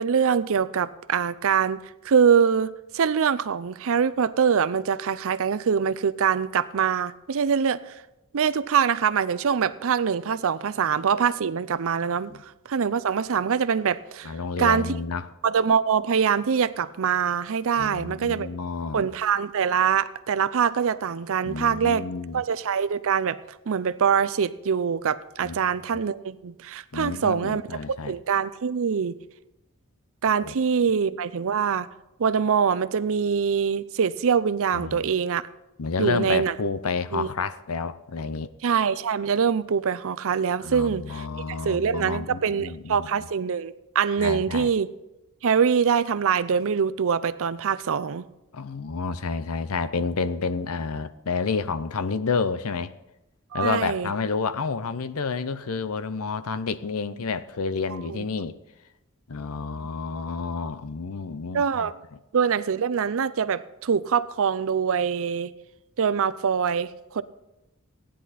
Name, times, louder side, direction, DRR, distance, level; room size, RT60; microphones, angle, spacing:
voice 1, 0.0-1.8 2.0-7.9 8.3-12.3 12.7-14.3 14.6-14.9 15.4-18.5 18.9-22.1 22.3-23.4 23.7-27.6 28.1-29.2 30.2-31.9 32.2-35.4 36.0-36.5 37.1-37.3 38.6-44.9 45.4-48.2 53.5-54.1 58.1-58.2 61.5-61.9 62.3-65.5 66.0-67.2, right 7 dB, 65° right, 16 dB, 0.5 m, -24 dB
voice 2, 14.2-15.3 17.8-19.1 21.4-22.4 25.4-26.0 26.9-28.1 30.4-30.5 34.7-35.1 35.8-38.5 40.6-43.1 44.2-44.7 48.5-52.9 53.5-58.5 59.3-61.9, left 4 dB, 70° left, 14 dB, 0.6 m, -30 dB
15.5 x 10.0 x 4.2 m, 0.92 s
head